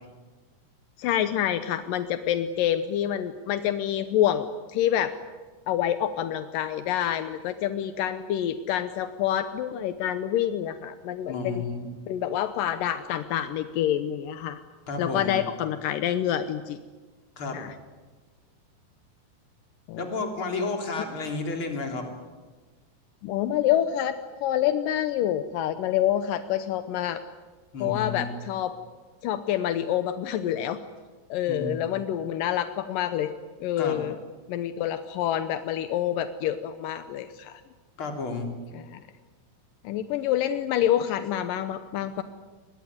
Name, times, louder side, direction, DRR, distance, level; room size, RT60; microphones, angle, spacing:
voice 1, 1.0-5.1 5.7-11.6 12.1-14.6 15.0-16.8 17.5-17.7 19.9-20.0 23.2-24.1 24.4-27.2 27.8-28.7 29.2-30.8 31.3-33.3 33.6-34.2 34.5-37.6 38.7-39.0 39.8-42.2, left 11 dB, 80° left, 10 dB, 2.0 m, -27 dB
voice 2, 11.3-11.9 14.9-15.4 17.4-17.6 20.0-22.1 27.7-28.3 31.5-31.8 33.8-34.0 38.0-38.6, left 3 dB, 30° left, 3 dB, 3.6 m, -31 dB
24.0 x 20.5 x 9.5 m, 1.3 s
omnidirectional pair, 5.1 m